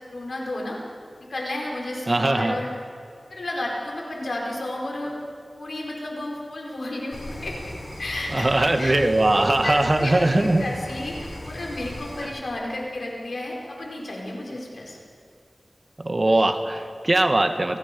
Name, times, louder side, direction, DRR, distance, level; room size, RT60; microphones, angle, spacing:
voice 1, 0.1-0.8 1.3-2.7 3.3-5.2 5.6-7.7 8.0-8.9 9.3-15.0, left 1 dB, 85° left, -2 dB, 4.9 m, -32 dB
voice 2, 2.1-2.6 8.3-10.6 12.2-12.3 16.0-17.8, right 2 dB, 45° right, 6 dB, 1.7 m, -21 dB
sound 1, 7.1-12.3, left 1 dB, 55° left, 7.1 m, -37 dB
28.5 x 19.0 x 5.4 m, 2.3 s
wide cardioid pair, 55°, 0 cm